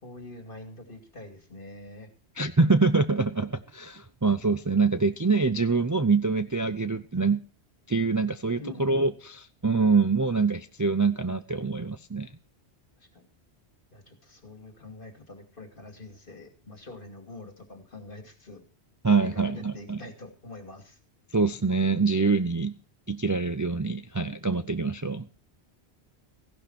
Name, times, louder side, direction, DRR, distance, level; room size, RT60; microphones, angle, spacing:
voice 1, 0.0-2.1 8.6-9.0 13.0-13.3 13.9-18.6 19.2-21.0, left 2 dB, 55° left, 6 dB, 2.9 m, -45 dB
voice 2, 2.4-7.4 7.9-12.3 19.0-20.0 21.3-22.7 23.1-25.3, right 4 dB, 25° right, 11 dB, 0.5 m, -25 dB
15.5 x 11.5 x 4.3 m, 0.38 s
omnidirectional pair, 1.1 m